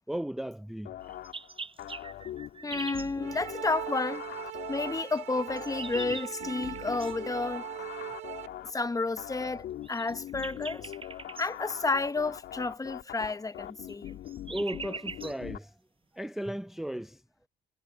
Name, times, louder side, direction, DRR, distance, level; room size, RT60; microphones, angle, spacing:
voice 1, 0.1-0.9 8.6-8.7 14.4-15.8 16.1-17.2, right 1 dB, ahead, 0.5 m, -35 dB
sound 1, 0.8-15.6, left 12 dB, 80° left, 2.9 m, -42 dB
sound 2, 1.0-3.1 5.1-7.2 9.8-11.5 13.9-15.4, right 4 dB, 30° right, 6.0 m, -42 dB
voice 2, 2.6-4.3 4.7-7.7 8.6-10.9 11.4-14.2, left 3 dB, 20° left, 0.8 m, -31 dB
sound 3, 3.2-8.5, right 16 dB, 90° right, 3.2 m, -40 dB
cardioid pair, 90°, 18 cm